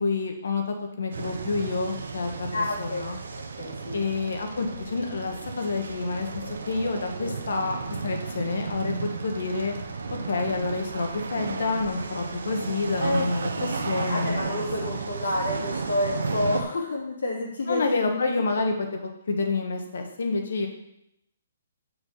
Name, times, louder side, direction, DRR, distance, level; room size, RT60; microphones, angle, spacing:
voice 1, 0.0-3.2 3.9-8.9 9.2-9.7 10.3-14.9 17.7-20.7, left 3 dB, 65° left, 4 dB, 1.5 m, -28 dB
sound 1, 1.1-16.6, right 4 dB, 85° right, 1.2 m, -34 dB
voice 2, 2.5-3.1 3.6-4.0 7.2-7.3 13.0-13.3 13.5-13.6 13.9-18.2, left 1 dB, 85° left, -2 dB, 2.7 m, -29 dB
6.4 x 4.9 x 6.7 m, 0.81 s
hypercardioid pair, 180°, 0 cm